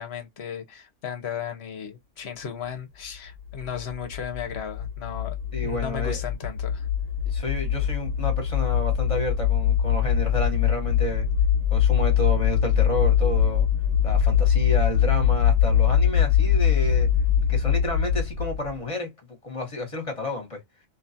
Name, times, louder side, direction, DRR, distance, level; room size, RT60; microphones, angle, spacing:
voice 1, 0.0-5.3 5.6-6.9, left 8 dB, 60° left, 0.8 m, -35 dB
sound 1, 3.5-18.8, left 8 dB, 65° right, 1.3 m, -22 dB
voice 2, 5.5-6.2 7.2-11.3 11.7-13.7 14.0-17.1 17.5-20.6, left 2 dB, 25° left, 1.0 m, -30 dB
2.7 x 2.3 x 2.6 m
omnidirectional pair, 1.4 m